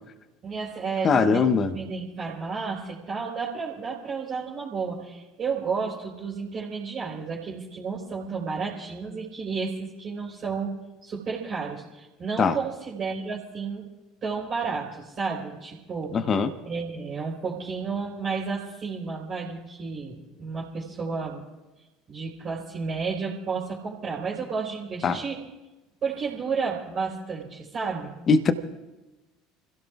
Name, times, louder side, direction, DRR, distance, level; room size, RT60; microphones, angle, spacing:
voice 1, 0.4-1.4 1.7-10.7 11.0-13.8 14.2-16.2 16.6-21.4 22.1-25.4 26.0-28.1, right 5 dB, 35° right, -5 dB, 3.9 m, -32 dB
voice 2, 1.0-1.7 12.4-12.6 16.1-16.5 25.0-25.2 28.3-28.5, left 5 dB, 30° left, 11 dB, 1.1 m, -21 dB
29.5 x 17.0 x 2.4 m, 1.1 s
figure-of-eight pair, 65°, 0 cm